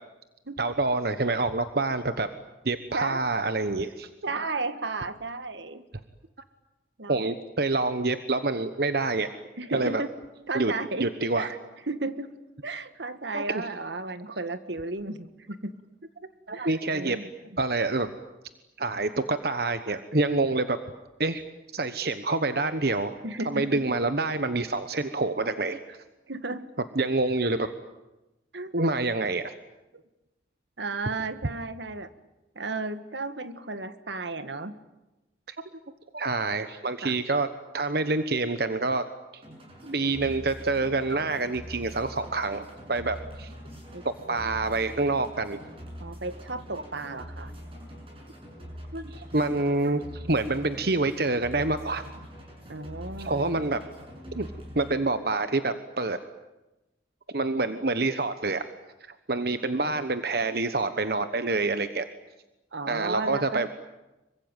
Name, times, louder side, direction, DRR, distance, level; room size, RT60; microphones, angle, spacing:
voice 1, 0.6-2.3 2.6-4.1 7.1-9.3 9.7-10.0 10.5-10.7 11.0-11.5 13.3-13.6 16.5-17.2 17.6-18.1 18.8-20.8 21.2-21.4 21.7-23.2 23.4-26.0 26.9-27.7 28.7-29.5 35.5-35.6 36.1-37.5 37.7-39.0 39.3-39.4 39.8-43.5 44.3-45.6 48.9-52.0 53.2-53.8 54.3-54.5 54.7-56.2 57.3-58.6 59.3-62.1 62.9-63.7, right 3 dB, 60° right, 10 dB, 1.2 m, -27 dB
voice 2, 4.2-5.9 7.0-7.3 9.6-10.1 10.5-11.1 11.4-11.6 11.9-12.3 12.6-15.7 16.5-17.3 23.2-23.8 26.3-26.7 28.5-28.7 30.8-32.1 32.6-34.7 37.0-37.1 43.9-44.0 46.0-47.5 52.7-53.7 62.7-63.7, right 3 dB, 80° right, 11 dB, 1.7 m, -34 dB
sound 1, 39.4-54.9, equal, 30° right, 7.2 m, -43 dB
26.5 x 24.0 x 9.1 m, 1.0 s
head